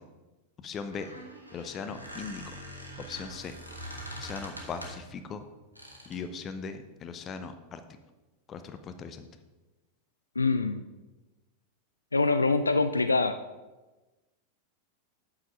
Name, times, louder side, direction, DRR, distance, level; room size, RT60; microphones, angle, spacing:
voice 1, 0.6-1.1 1.5-2.4 3.1-3.5 4.2-5.4 6.1-7.8 8.5-9.3, left 5 dB, 25° left, 9 dB, 0.7 m, -39 dB
Squeak, 0.8-5.1 5.8-6.3, equal, 85° right, 1.3 m, -43 dB
voice 2, 10.4-10.8 12.1-13.4, left 3 dB, 80° left, 10 dB, 0.3 m, -24 dB
8.2 x 4.9 x 5.2 m, 1.1 s
figure-of-eight pair, 90°, 0 cm